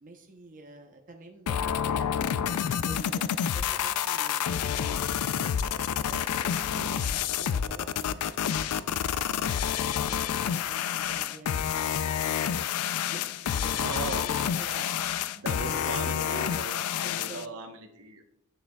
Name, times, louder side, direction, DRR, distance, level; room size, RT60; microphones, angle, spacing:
voice 1, 0.0-2.5 2.8-5.6 6.1-9.4 10.1-12.8 13.1-15.0 15.4-17.5, right 2 dB, 35° right, 3 dB, 0.7 m, -48 dB
sound 1, 1.5-17.5, left 9 dB, 85° left, 0.4 m, -29 dB
voice 2, 13.7-14.6 15.3-18.2, right 3 dB, 70° right, 6 dB, 1.0 m, -38 dB
9.8 x 6.5 x 2.2 m, 0.73 s
head